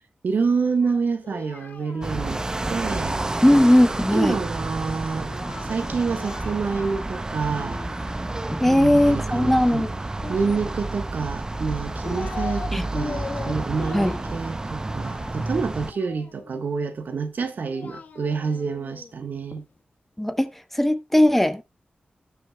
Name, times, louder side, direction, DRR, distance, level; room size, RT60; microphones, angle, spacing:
voice 1, 0.2-2.4 2.7-3.2 4.1-5.3 5.6-7.8 8.6-9.9 10.3-19.6, right 5 dB, 75° right, 1.2 m, -27 dB
Singing, 0.8-4.1 5.2-7.2 7.5-8.8 10.2-11.1 11.7-12.7 12.9-16.6 17.4-19.6, left 4 dB, 65° left, 1.3 m, -40 dB
sound 1, 2.0-15.9, right 2 dB, 20° right, 0.6 m, -30 dB
voice 2, 3.4-4.4 8.5-9.9 12.7-12.9 13.9-14.2 20.2-21.6, left 1 dB, 5° left, 0.8 m, -19 dB
18.0 x 6.3 x 2.2 m
wide cardioid pair, 135°, 3 cm